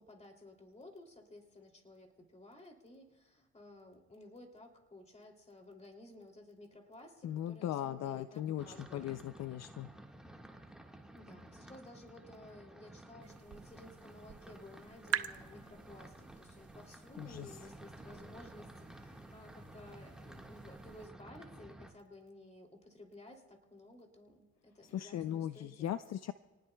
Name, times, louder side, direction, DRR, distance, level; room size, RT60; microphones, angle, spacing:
voice 1, 0.0-9.2 11.1-25.9, left 1 dB, 20° left, 2 dB, 2.8 m, -55 dB
voice 2, 7.2-9.9 17.2-17.6 24.8-26.3, left 11 dB, 60° left, 12 dB, 0.5 m, -38 dB
sound 1, 8.6-21.9, right 1 dB, ahead, 1.6 m, -53 dB
sound 2, 13.2-21.1, right 10 dB, 55° right, 0.8 m, -46 dB
28.0 x 19.0 x 2.3 m, 1.3 s
cardioid pair, 90°, 30 cm